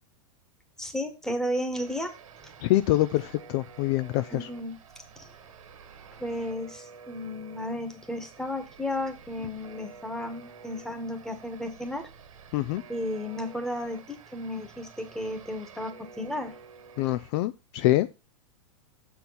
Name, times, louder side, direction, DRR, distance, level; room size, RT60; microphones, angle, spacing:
voice 1, 0.8-2.1 2.4-2.5 4.3-4.7 5.2-5.3 6.2-12.1 12.9-16.5, left 1 dB, 5° left, 6 dB, 1.3 m, -33 dB
sound 1, 1.7-17.3, right 6 dB, 80° right, 1.7 m, -50 dB
voice 2, 2.6-4.5 12.5-12.8 17.0-18.1, left 16 dB, 50° left, 13 dB, 0.4 m, -25 dB
6.7 x 4.5 x 5.4 m, 0.28 s
hypercardioid pair, 130°, 17 cm